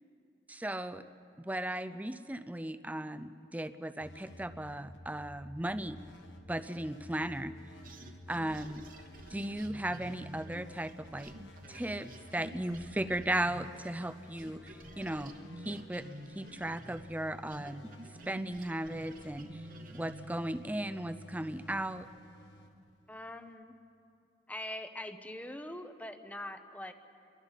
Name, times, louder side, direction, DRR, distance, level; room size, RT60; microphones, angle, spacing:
voice 1, 0.5-1.0 1.4-6.0 6.5-7.5 8.3-8.8 9.3-11.3 11.7-15.3 15.7-16.0 16.4-17.9 18.3-19.6 19.9-22.1, right 1 dB, 10° right, 10 dB, 0.5 m, -36 dB
sound 1, 4.0-23.5, left 1 dB, 85° left, 1.5 m, -53 dB
sound 2, 7.8-14.1 14.4-20.6, right 1 dB, 50° right, 1.2 m, -50 dB
voice 2, 23.1-23.7 24.5-26.9, left 1 dB, 10° left, 8 dB, 0.9 m, -43 dB
29.0 x 23.0 x 4.1 m, 2.6 s
head